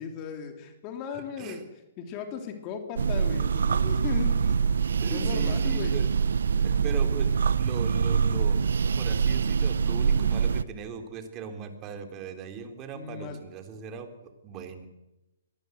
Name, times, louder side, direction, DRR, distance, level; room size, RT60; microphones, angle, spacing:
voice 1, 0.0-1.6 2.0-4.6 5.1-6.0 12.9-13.4, left 7 dB, 30° left, 5 dB, 3.2 m, -37 dB
voice 2, 1.1-1.6 5.0-6.1 6.6-8.6 8.9-14.9, right 6 dB, 25° right, 6 dB, 3.4 m, -39 dB
sound 1, 3.0-10.6, right 6 dB, 75° right, 0.9 m, -25 dB
22.5 x 19.5 x 8.0 m, 0.98 s
hypercardioid pair, 145°, 0 cm